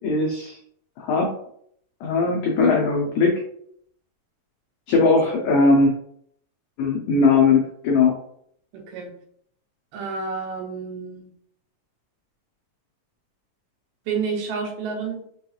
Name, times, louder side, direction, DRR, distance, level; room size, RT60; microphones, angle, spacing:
voice 1, 0.0-0.6 1.0-1.3 2.0-3.4 4.9-5.9 6.8-8.1, left 3 dB, 90° left, -1 dB, 1.6 m, -19 dB
voice 2, 8.7-9.1 9.9-11.3 14.1-15.2, right 5 dB, 80° right, 1 dB, 2.3 m, -29 dB
5.5 x 2.3 x 2.8 m, 0.66 s
omnidirectional pair, 4.1 m